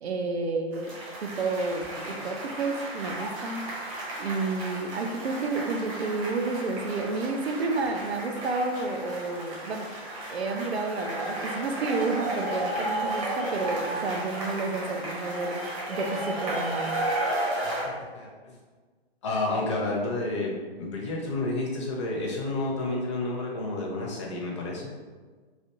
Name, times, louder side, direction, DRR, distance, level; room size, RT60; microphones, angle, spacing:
voice 1, 0.0-3.6 4.2-9.9 10.3-16.9, right 3 dB, 75° right, 4 dB, 0.5 m, -30 dB
sound 1, 0.7-17.8, right 1 dB, 35° right, 0.8 m, -33 dB
voice 2, 17.6-18.5 19.2-24.9, left 2 dB, 30° left, -2 dB, 0.6 m, -30 dB
3.2 x 2.5 x 2.8 m, 1.4 s
figure-of-eight pair, 130°, 32 cm